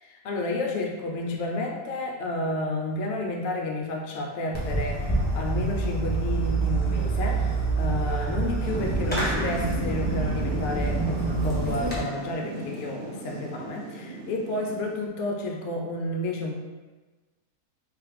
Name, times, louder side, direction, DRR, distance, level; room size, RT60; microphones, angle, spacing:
voice 1, 0.0-16.5, left 2 dB, 70° left, 1 dB, 0.6 m, -31 dB
Fireworks, 4.5-12.0, right 3 dB, 10° left, 0.7 m, -27 dB
Thunder / Rain, 8.6-15.1, right 2 dB, 75° right, 0.6 m, -36 dB
3.3 x 3.1 x 3.8 m, 1.3 s
omnidirectional pair, 1.8 m